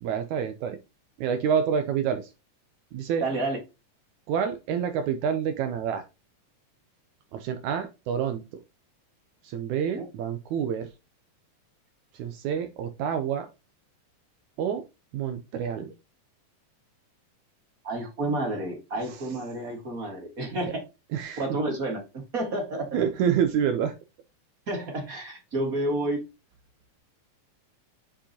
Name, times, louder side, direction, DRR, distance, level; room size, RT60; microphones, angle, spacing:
voice 1, 0.0-0.8 1.2-2.3 2.9-3.2 4.3-6.0 7.3-8.4 9.4-10.9 12.2-13.5 14.6-14.8 15.1-15.9 21.1-21.4 22.9-23.9, right 8 dB, 75° right, 7 dB, 1.9 m, -27 dB
voice 2, 3.2-3.6 9.9-10.1 17.8-20.8 21.4-22.1 22.3-23.0 24.7-26.2, right 1 dB, 35° right, 2 dB, 1.6 m, -30 dB
8.6 x 4.8 x 2.9 m, 0.26 s
omnidirectional pair, 3.7 m